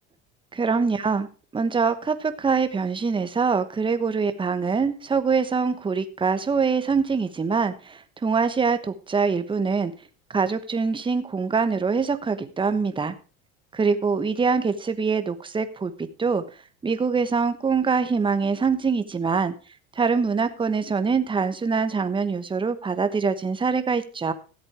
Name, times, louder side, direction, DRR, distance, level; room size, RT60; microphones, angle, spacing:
voice 1, 0.5-1.3 1.5-9.9 10.3-13.1 13.7-15.9 16.2-16.4 16.8-19.5 20.0-24.3, right 5 dB, 15° right, 11 dB, 1.1 m, -24 dB
13.5 x 8.1 x 4.8 m, 0.35 s
supercardioid pair, 120°, 30 cm